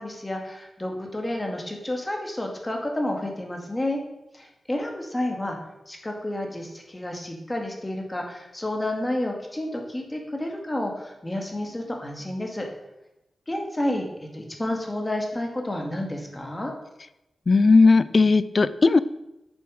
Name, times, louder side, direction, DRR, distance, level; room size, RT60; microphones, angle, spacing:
voice 1, 0.0-4.0 4.3-5.6 5.9-12.7 13.5-16.7, left 1 dB, 15° left, 2 dB, 2.1 m, -30 dB
voice 2, 17.5-19.0, left 3 dB, 40° left, 16 dB, 0.4 m, -17 dB
9.3 x 7.1 x 6.4 m, 0.91 s
wide cardioid pair, 115°, 0 cm